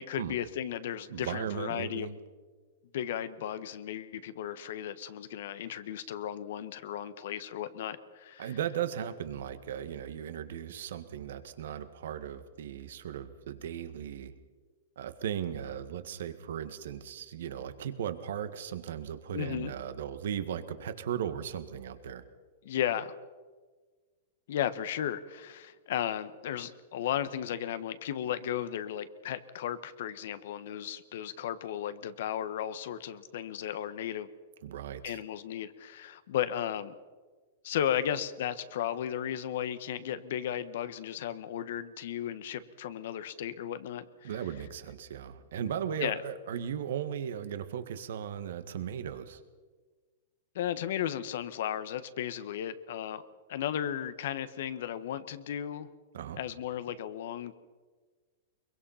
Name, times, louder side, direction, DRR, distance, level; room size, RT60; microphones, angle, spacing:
voice 1, 0.0-2.2 2.9-8.5 19.3-19.7 22.6-23.1 24.5-34.3 35.0-36.9 37.6-44.3 46.0-46.2 50.5-53.2 53.5-55.9 56.4-57.5, left 10 dB, 70° left, 13 dB, 1.3 m, -35 dB
voice 2, 1.1-2.2 8.4-14.3 14.9-22.2 34.6-35.2 44.2-49.4 56.1-56.4, right 9 dB, 75° right, 11 dB, 1.7 m, -37 dB
23.0 x 22.0 x 5.8 m, 1.4 s
hypercardioid pair, 125°, 0 cm